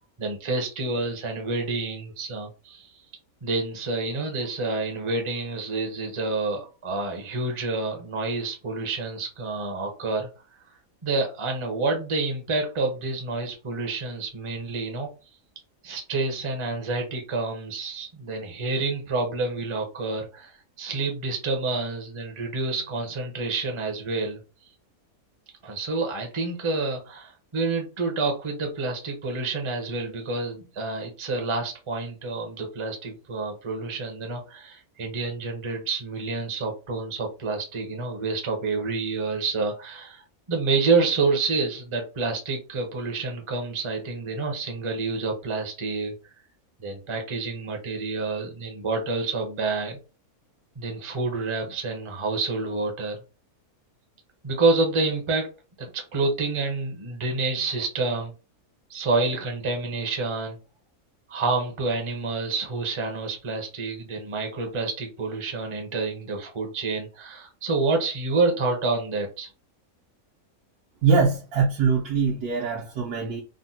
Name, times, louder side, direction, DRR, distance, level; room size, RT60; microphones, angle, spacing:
voice 1, 0.2-3.0 3.4-10.3 11.0-15.1 15.8-24.4 25.6-40.2 40.5-46.1 46.8-50.0 50.8-53.2 54.4-55.5 55.8-58.3 58.9-60.6 61.3-69.5, right 3 dB, 35° right, 0.4 m, -28 dB
voice 2, 71.0-73.4, right 5 dB, 90° right, 1.2 m, -23 dB
3.6 x 2.1 x 2.6 m
omnidirectional pair, 1.5 m